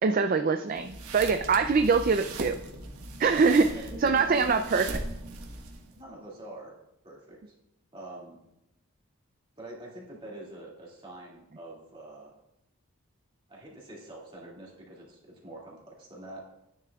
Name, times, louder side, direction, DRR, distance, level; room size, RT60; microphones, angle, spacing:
voice 1, 0.0-2.6 3.2-3.7 4.0-5.0, right 5 dB, 40° right, 7 dB, 0.3 m, -23 dB
sound 1, 0.7-6.0, right 2 dB, 85° right, 1.3 m, -39 dB
voice 2, 3.3-4.5 5.9-6.7 7.0-7.4 7.9-8.4 9.6-12.3 13.5-16.4, right 1 dB, 25° right, -5 dB, 2.2 m, -45 dB
13.0 x 10.0 x 2.3 m, 0.85 s
head